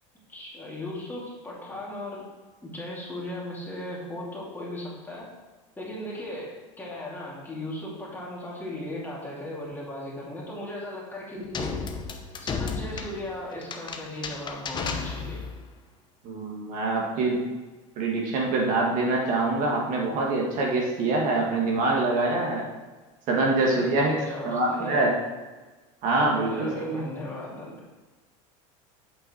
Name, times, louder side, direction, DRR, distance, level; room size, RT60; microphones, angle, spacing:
voice 1, 0.3-2.3 2.6-5.3 5.8-11.7 12.4-15.4 23.5-25.0 26.3-27.8, left 1 dB, 10° left, -5 dB, 2.7 m, -37 dB
sound 1, 11.5-15.6, left 5 dB, 30° left, 0.9 m, -33 dB
voice 2, 16.2-17.5 18.0-22.7 23.3-25.1 26.0-27.1, right 2 dB, 55° right, -1 dB, 1.9 m, -25 dB
8.0 x 5.6 x 4.5 m, 1.3 s
supercardioid pair, 120°, 16 cm